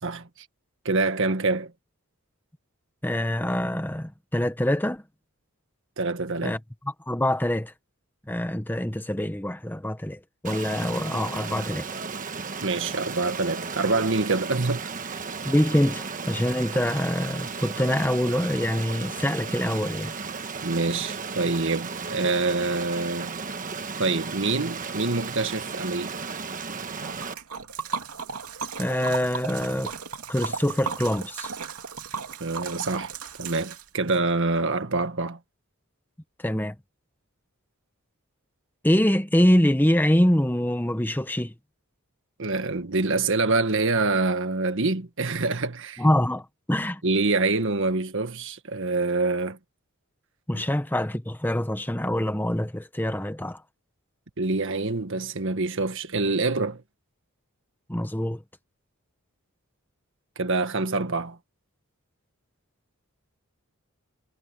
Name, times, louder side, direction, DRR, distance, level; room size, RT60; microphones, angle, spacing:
voice 1, 0.8-1.7 6.0-6.6 12.6-14.9 20.6-23.4 24.0-26.2 32.4-33.1 33.4-35.4 42.4-46.0 47.0-49.6 54.4-56.8 60.4-61.4, right 3 dB, 60° right, 1.6 m, -26 dB
voice 2, 3.0-5.0 6.4-6.6 7.1-7.7 8.3-11.9 15.4-20.1 28.8-29.9 30.3-31.5 36.4-36.7 38.8-41.5 46.0-47.0 50.5-53.6 57.9-58.4, left 1 dB, 10° left, 1.1 m, -25 dB
Stream, 10.4-27.3, right 5 dB, 35° right, 1.3 m, -34 dB
Liquid, 27.0-34.2, right 5 dB, 75° right, 2.7 m, -35 dB
head